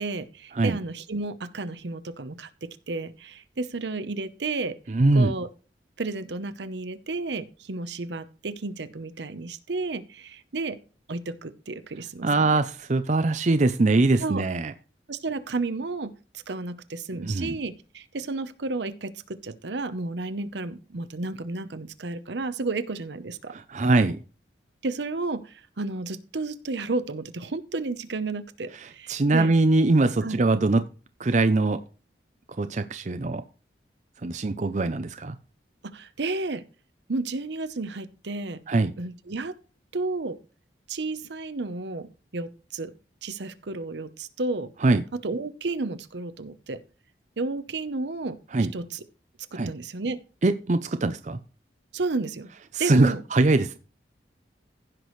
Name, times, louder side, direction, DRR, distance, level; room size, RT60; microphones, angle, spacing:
voice 1, 0.0-4.8 5.1-5.5 6.0-10.8 11.1-12.6 14.2-14.4 15.1-23.5 24.8-29.5 30.2-30.4 35.8-36.6 37.1-38.6 39.0-39.5 39.9-40.4 40.9-42.9 43.2-44.7 45.1-46.8 47.4-48.4 48.7-49.0 49.5-50.2 51.9-52.5 52.8-53.2, right 3 dB, 75° right, 12 dB, 0.8 m, -32 dB
voice 2, 4.9-5.3 12.2-14.7 17.2-17.5 23.5-24.2 29.1-30.8 31.2-31.8 32.6-33.4 34.2-35.4 38.7-38.9 44.8-45.0 48.5-48.7 49.5-49.7 50.4-51.4 52.7-53.8, right 2 dB, 40° right, 10 dB, 0.5 m, -22 dB
15.5 x 6.0 x 3.1 m, 0.35 s
head